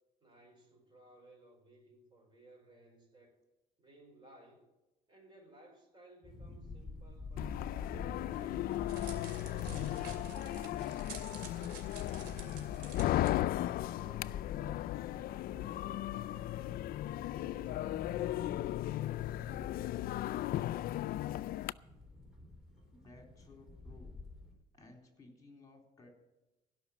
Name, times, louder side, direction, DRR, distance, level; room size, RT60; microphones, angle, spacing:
voice 1, 0.2-3.4 3.8-4.7 5.1-9.0 9.4-13.1 13.5-16.8 17.3-21.4, right 2 dB, 25° right, 1 dB, 5.1 m, -61 dB
sound 1, 6.2-24.5, left 3 dB, ahead, 3.6 m, -50 dB
sound 2, 7.4-21.7, left 14 dB, 60° left, 0.4 m, -36 dB
Crackle, 8.3-13.3, right 5 dB, 80° right, 2.7 m, -51 dB
voice 2, 22.9-24.2 24.7-26.1, left 2 dB, 20° left, 2 dB, 3.9 m, -58 dB
17.0 x 5.9 x 8.6 m, 1.0 s
cardioid pair, 110°, 17 cm